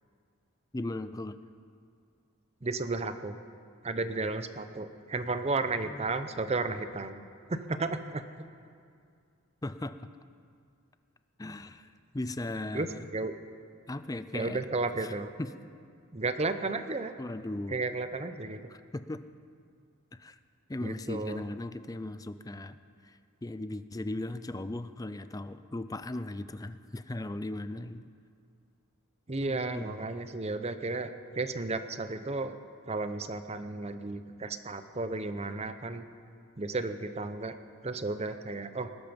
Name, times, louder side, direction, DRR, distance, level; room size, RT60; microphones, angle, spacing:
voice 1, 0.7-1.4 5.8-6.0 9.6-10.0 11.4-13.1 13.9-14.6 15.0-15.1 15.4-15.5 17.2-17.8 18.7-19.2 20.1-20.4 20.7-22.8 23.0-28.0 29.4-30.0, left 2 dB, 15° left, 12 dB, 0.4 m, -37 dB
voice 2, 2.6-3.3 3.8-7.2 7.5-8.2 12.7-12.9 13.1-13.3 14.3-15.3 16.1-17.1 17.7-18.7 20.8-21.4 29.3-32.5 32.9-36.0 36.6-37.6 37.8-38.9, right 3 dB, 30° right, 10 dB, 0.7 m, -33 dB
19.5 x 12.5 x 5.2 m, 2.3 s
head